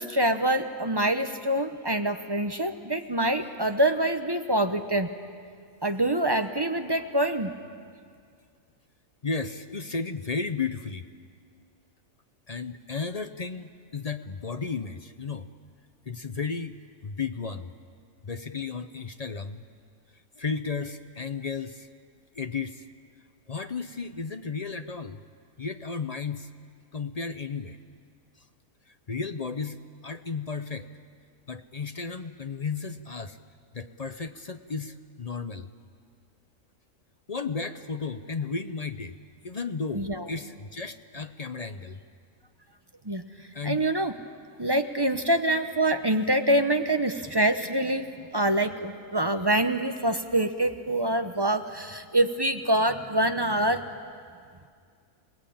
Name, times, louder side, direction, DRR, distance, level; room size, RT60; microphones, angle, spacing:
voice 1, 0.0-5.1 5.8-7.5 39.9-40.3 43.0-43.2 43.6-44.1 44.6-48.1 48.3-53.8, right 1 dB, 20° right, 7 dB, 0.9 m, -25 dB
voice 2, 9.2-11.1 12.5-15.5 16.1-16.8 17.0-17.7 18.2-19.6 20.4-21.9 22.3-22.8 23.5-25.2 25.6-26.5 26.9-27.8 29.1-29.8 30.0-30.9 31.5-33.4 33.7-35.7 37.3-39.2 39.4-42.0 43.5-43.9, left 5 dB, 40° left, 9 dB, 0.6 m, -33 dB
28.0 x 19.0 x 8.6 m, 2.1 s
omnidirectional pair, 1.5 m